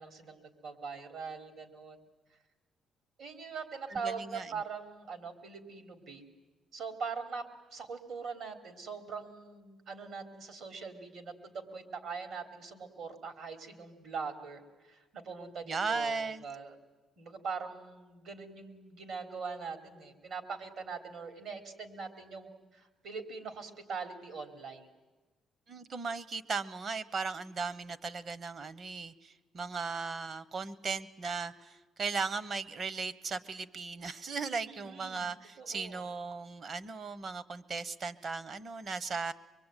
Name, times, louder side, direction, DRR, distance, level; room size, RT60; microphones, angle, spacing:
voice 1, 0.0-2.0 3.2-6.2 6.7-16.8 17.2-24.9 34.7-35.3 35.6-36.0, right 5 dB, 75° right, 7 dB, 3.5 m, -42 dB
voice 2, 3.9-4.5 15.7-16.4 25.7-39.3, right 4 dB, 50° right, 17 dB, 1.1 m, -37 dB
24.0 x 23.0 x 9.2 m, 1.2 s
cardioid pair, 90°, 0 cm